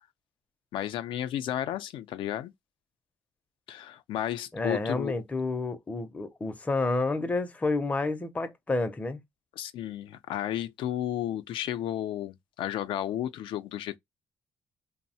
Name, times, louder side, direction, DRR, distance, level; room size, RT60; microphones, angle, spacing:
voice 1, 0.7-2.5 3.7-5.2 9.6-14.0, left 11 dB, 85° left, 0.4 m, -33 dB
voice 2, 4.5-9.2, left 3 dB, 15° left, 0.4 m, -29 dB
3.0 x 2.0 x 2.7 m
cardioid pair, 130°, 8 cm